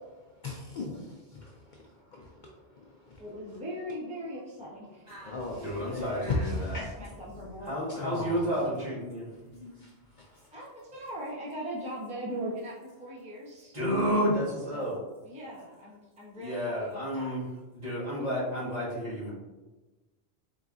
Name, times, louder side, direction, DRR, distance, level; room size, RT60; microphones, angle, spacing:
voice 1, 0.4-1.0 1.3-3.2 5.2-7.1 7.4-7.5 7.9-8.5 9.5-10.4, left 2 dB, 60° left, -1 dB, 0.6 m, -37 dB
voice 2, 3.2-5.1 6.6-7.7 10.5-13.7 14.5-17.4, equal, 10° right, -6 dB, 0.7 m, -40 dB
voice 3, 5.1-6.8 7.6-9.3 13.7-15.0 16.4-17.4 17.7-19.3, equal, 40° right, -8 dB, 1.4 m, -31 dB
3.9 x 3.7 x 2.4 m, 1.2 s
omnidirectional pair, 1.1 m